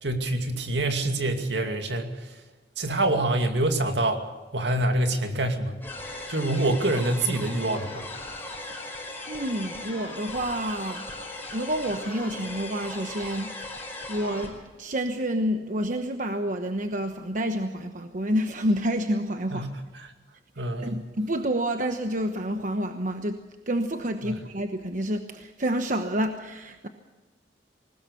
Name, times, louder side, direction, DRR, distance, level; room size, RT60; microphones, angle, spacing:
voice 1, 0.0-2.3 2.8-4.2 4.5-5.8 6.3-8.1 19.5-20.1 20.6-21.0 24.2-24.3, right 1 dB, 80° right, 5 dB, 2.5 m, -26 dB
sound 1, 5.8-14.5, left 2 dB, 10° left, 4.7 m, -38 dB
voice 2, 9.3-11.1 11.5-13.5 14.1-19.7 20.8-23.4 23.7-26.9, equal, 45° right, 6 dB, 1.1 m, -28 dB
20.5 x 19.5 x 6.9 m, 1.3 s
head